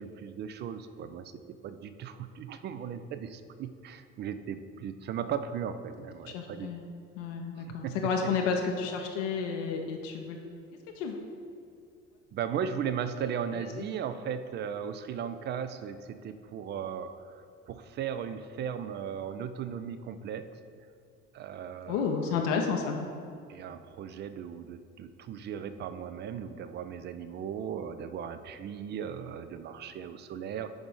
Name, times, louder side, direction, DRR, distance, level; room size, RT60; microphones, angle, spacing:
voice 1, 0.0-6.7 7.6-8.3 12.3-20.5 21.3-22.4 23.5-30.7, right 8 dB, 30° right, 11 dB, 0.4 m, -37 dB
voice 2, 6.3-6.8 7.2-10.4 10.9-11.2 21.9-23.0, left 5 dB, 65° left, 2 dB, 0.7 m, -31 dB
7.1 x 4.9 x 3.7 m, 2.4 s
figure-of-eight pair, 55°, 40 cm